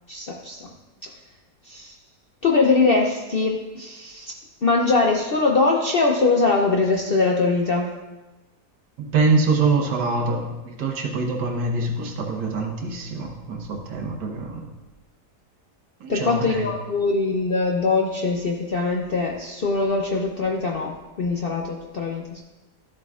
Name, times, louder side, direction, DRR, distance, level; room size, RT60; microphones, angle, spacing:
voice 1, 0.1-0.7 1.6-1.9 2.4-4.3 4.6-7.9 16.1-22.4, left 3 dB, 60° left, 0 dB, 0.6 m, -22 dB
voice 2, 9.0-14.7 16.0-16.7, right 3 dB, 80° right, 1 dB, 1.8 m, -24 dB
13.0 x 7.5 x 2.4 m, 1.1 s
omnidirectional pair, 1.8 m